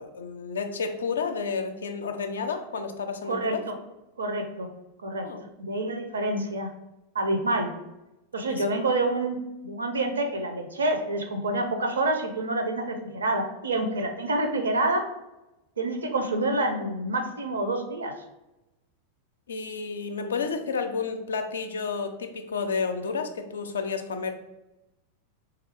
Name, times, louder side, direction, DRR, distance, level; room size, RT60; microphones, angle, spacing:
voice 1, 0.0-3.6 5.2-5.4 8.5-8.6 19.5-24.3, left 5 dB, 70° left, 6 dB, 0.4 m, -31 dB
voice 2, 3.3-3.7 4.2-4.7 5.0-5.3 5.6-6.7 7.1-7.7 8.3-9.4 9.6-15.0 15.8-18.1, right 2 dB, 70° right, 5 dB, 0.5 m, -27 dB
3.6 x 2.3 x 3.4 m, 0.97 s
figure-of-eight pair, 90°, 0 cm